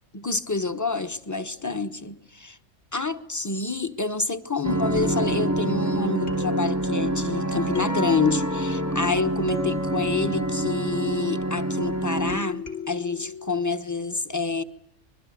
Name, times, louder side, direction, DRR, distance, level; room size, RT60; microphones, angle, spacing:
voice 1, 0.1-2.6 2.9-14.6, left 3 dB, 15° left, 11 dB, 1.0 m, -28 dB
sound 1, 4.6-12.4, right 1 dB, 15° right, 0.9 m, -27 dB
sound 2, 4.7-4.8 5.0-11.7 12.3-13.5, left 2 dB, 75° left, 3.9 m, -39 dB
sound 3, 6.3-10.2, left 6 dB, 55° left, 2.7 m, -36 dB
26.0 x 22.0 x 9.3 m, 0.74 s
omnidirectional pair, 1.3 m